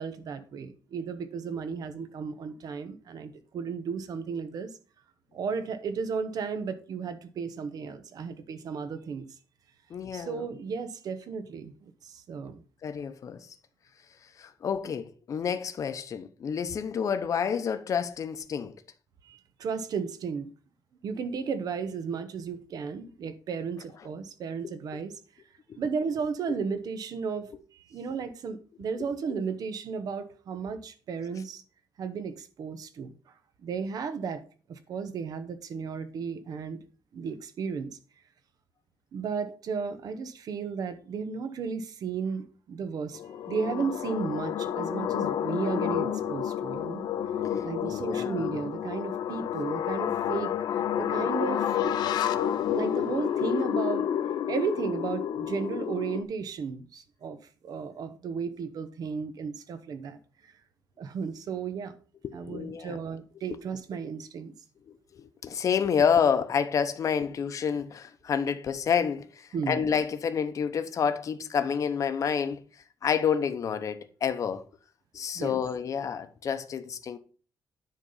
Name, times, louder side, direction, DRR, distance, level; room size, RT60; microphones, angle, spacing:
voice 1, 0.0-4.7 5.3-9.3 10.1-12.6 19.2-20.5 21.0-25.1 25.8-31.6 32.0-33.1 33.6-34.4 34.7-36.8 37.1-38.0 39.1-47.0 47.6-51.7 52.6-54.1 54.5-57.4 57.6-60.2 61.0-62.0 62.3-64.5 69.5-69.8 75.3-75.6, right 5 dB, 65° right, 1.0 m, -34 dB
voice 2, 9.9-10.5 12.8-13.5 14.4-18.8 24.6-25.0 25.7-25.8 26.5-26.6 29.0-29.1 47.6-48.6 62.2-63.0 64.9-72.6 73.0-74.6 75.1-77.2, left 7 dB, 50° left, 0.8 m, -29 dB
sound 1, 43.1-56.2, left 9 dB, 85° left, 0.6 m, -30 dB
9.9 x 4.0 x 5.6 m
wide cardioid pair, 155°, 7 cm